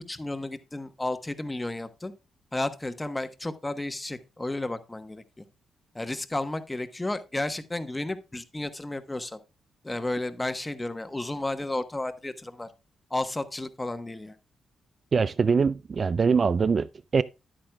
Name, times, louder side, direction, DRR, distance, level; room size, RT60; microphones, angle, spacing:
voice 1, 0.0-2.1 2.5-5.4 5.9-9.4 9.8-12.7 13.1-14.3, left 2 dB, 20° left, 1.1 m, -32 dB
voice 2, 15.1-16.9 17.1-17.2, right 5 dB, 50° right, 0.3 m, -23 dB
10.5 x 8.8 x 2.3 m
supercardioid pair, 55°, 0 cm